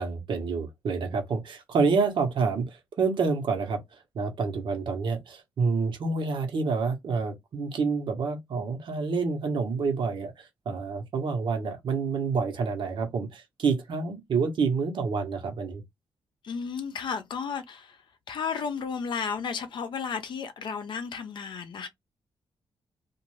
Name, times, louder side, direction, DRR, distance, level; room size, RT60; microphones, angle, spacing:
voice 1, 0.0-2.6 3.0-3.8 4.1-10.3 10.6-15.8, right 4 dB, 65° right, 1.1 m, -28 dB
voice 2, 16.4-18.0 18.3-21.9, left 6 dB, 60° left, 0.6 m, -33 dB
2.5 x 2.5 x 3.1 m
wide cardioid pair, 130°, 9 cm